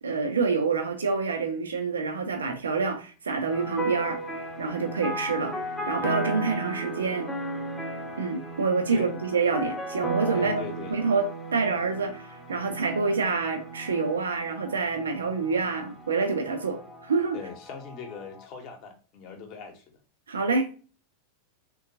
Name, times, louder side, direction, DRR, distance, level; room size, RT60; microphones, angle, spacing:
voice 1, 0.0-4.2 4.6-5.6 5.9-7.3 8.2-10.6 10.9-17.4 20.3-20.8, right 4 dB, 70° right, 0.6 m, -27 dB
sound 1, 3.5-18.5, right 2 dB, 5° left, 0.7 m, -35 dB
voice 2, 10.3-11.0 17.3-20.0, left 6 dB, 40° left, 0.9 m, -40 dB
3.6 x 2.3 x 2.7 m
figure-of-eight pair, 90°, 0 cm